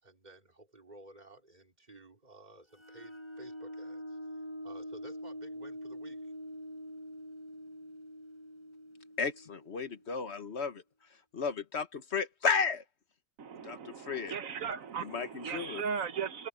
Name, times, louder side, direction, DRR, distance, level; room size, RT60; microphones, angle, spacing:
voice 1, 0.0-6.3, right 2 dB, 25° right, 4.3 m, -54 dB
sound 1, 2.7-10.2, equal, 15° left, 5.8 m, -45 dB
voice 2, 9.2-10.8 11.3-12.8 13.6-14.3 15.0-15.8, left 5 dB, 45° left, 1.5 m, -33 dB
voice 3, 13.4-16.5, right 6 dB, 60° right, 1.4 m, -37 dB
omnidirectional pair, 1.7 m